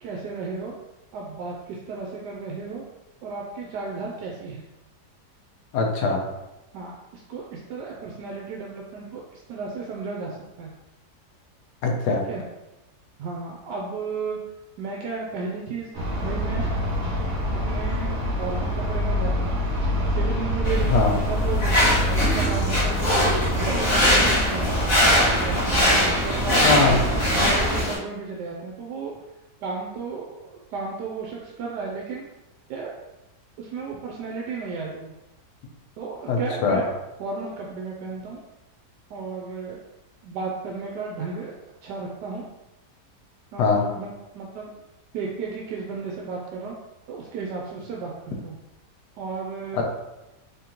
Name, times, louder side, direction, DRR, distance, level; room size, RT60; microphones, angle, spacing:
voice 1, 0.0-0.7 1.1-2.8 3.2-4.6 6.7-10.7 12.3-12.4 13.2-14.4 14.8-15.9 16.2-16.7 17.6-18.1 18.4-19.6 20.1-23.3 23.6-26.9 27.4-29.1 29.6-32.3 32.7-32.9 33.6-35.1 36.0-36.9 37.2-38.4 39.1-39.8 40.2-41.5 41.8-42.4 43.5-44.7 45.1-46.7 47.1-48.6 49.2-49.8, right 4 dB, 80° right, -2 dB, 1.2 m, -34 dB
voice 2, 5.7-6.2 11.8-12.2 20.9-21.1 26.6-27.0 36.3-36.8 43.6-43.8 49.8-49.9, left 4 dB, 75° left, 1 dB, 1.2 m, -21 dB
sound 1, 15.9-27.8, equal, 40° right, 0.8 m, -25 dB
sound 2, 20.6-27.9, equal, 55° left, 1.9 m, -22 dB
3.9 x 3.6 x 2.9 m, 0.97 s
omnidirectional pair, 1.8 m